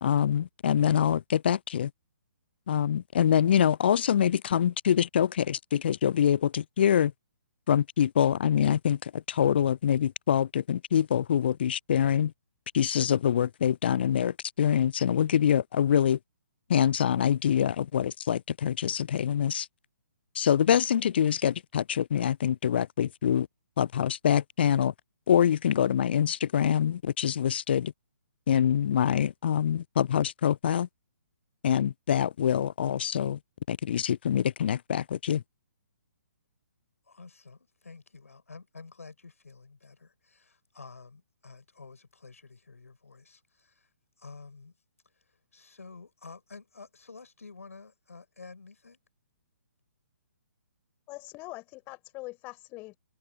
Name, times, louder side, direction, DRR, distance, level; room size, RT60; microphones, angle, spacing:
voice 1, 0.0-1.9 2.7-7.1 7.7-12.3 12.7-16.2 16.7-19.7 20.4-23.5 23.8-24.9 25.3-27.9 28.5-30.9 31.6-33.4 33.7-35.4, left 9 dB, 40° left, 0.4 m, -25 dB
voice 2, 37.1-43.9 44.2-44.7 45.2-49.0, left 4 dB, 65° left, 6.7 m, -50 dB
voice 3, 51.1-53.0, left 22 dB, 20° left, 5.7 m, -43 dB
figure-of-eight pair, 130°, 8 cm